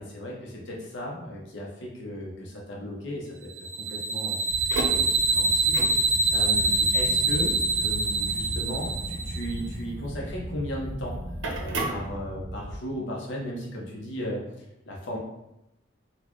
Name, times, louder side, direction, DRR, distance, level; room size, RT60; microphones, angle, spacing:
voice 1, 0.0-4.4 4.9-11.1 11.6-15.2, equal, 75° left, -3 dB, 0.7 m, -36 dB
sound 1, 3.6-9.5, right 3 dB, 40° right, 0.3 m, -25 dB
sound 2, 4.5-12.8, right 1 dB, 80° right, 0.6 m, -35 dB
4.0 x 2.2 x 3.0 m, 0.88 s
head